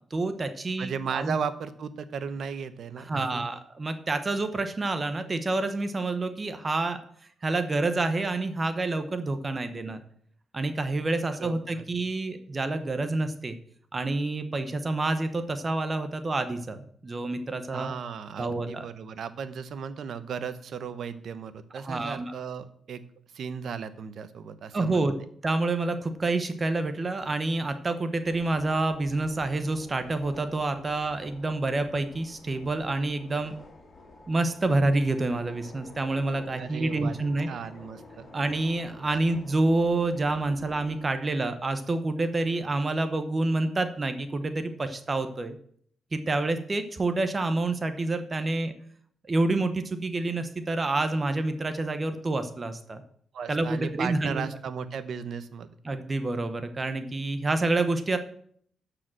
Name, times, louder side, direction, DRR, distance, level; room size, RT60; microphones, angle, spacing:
voice 1, 0.1-1.3 3.1-7.0 7.4-10.0 10.5-13.6 13.9-17.9 18.4-18.9 21.8-22.3 24.7-25.1 25.4-33.5 34.3-37.5 38.3-45.6 46.1-48.7 49.3-53.0 53.5-54.4 55.8-58.2, right 2 dB, 25° right, 9 dB, 0.9 m, -28 dB
voice 2, 0.8-3.5 11.4-11.8 17.7-23.0 23.3-25.1 36.6-37.2 37.5-38.3 39.1-39.2 53.3-55.7, right 6 dB, 65° right, 12 dB, 1.0 m, -36 dB
sound 1, 28.2-41.1, left 2 dB, 40° left, 2.8 m, -50 dB
12.5 x 4.9 x 7.5 m, 0.62 s
cardioid pair, 130°, 0 cm